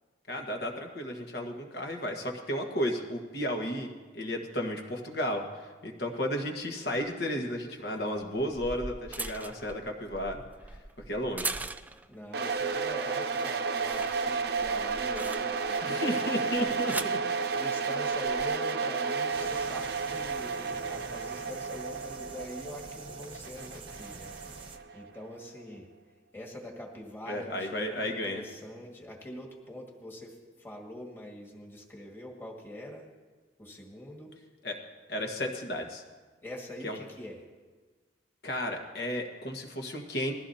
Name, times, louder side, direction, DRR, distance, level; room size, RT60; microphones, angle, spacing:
voice 1, 0.3-10.4 10.7-10.8 11.1-11.7 15.8-17.2 27.3-28.4 34.6-34.8 35.1-36.0 36.8-37.0 38.4-40.3, equal, 60° left, 2 dB, 1.5 m, -33 dB
sound 1, 6.9-7.0 8.2-12.2 12.6-12.9 13.2-15.8 16.5-17.2 18.1-18.4, right 3 dB, 10° right, 0.3 m, -40 dB
voice 2, 12.1-25.9 26.3-33.1 33.6-34.3 36.4-37.4, left 1 dB, 15° left, -1 dB, 1.8 m, -44 dB
sound 2, 12.3-25.2, right 5 dB, 60° right, 0.8 m, -32 dB
sound 3, 19.3-24.8, right 3 dB, 30° right, 1.0 m, -47 dB
20.5 x 15.0 x 2.8 m, 1.4 s
head